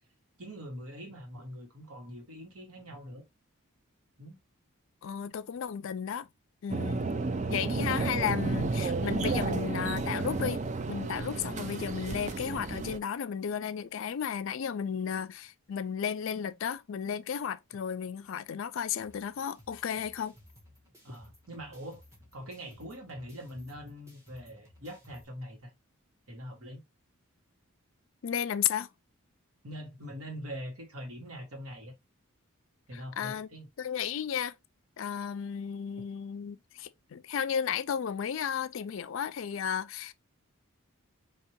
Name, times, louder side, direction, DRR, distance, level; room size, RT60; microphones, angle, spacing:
voice 1, 0.4-3.2 4.2-4.4 21.0-22.0 22.3-25.7 26.3-26.8 29.6-31.9 32.9-33.7, equal, 75° right, 1.7 m, -43 dB
voice 2, 5.0-6.3 6.6-7.0 7.5-20.3 28.2-28.9 32.9-33.5 33.8-34.5 35.0-40.1, left 8 dB, 60° left, 0.3 m, -34 dB
sound 1, 6.7-13.0, right 3 dB, 35° right, 0.4 m, -32 dB
sound 2, 19.0-25.2, left 1 dB, 15° right, 1.3 m, -58 dB
4.5 x 2.9 x 2.9 m
head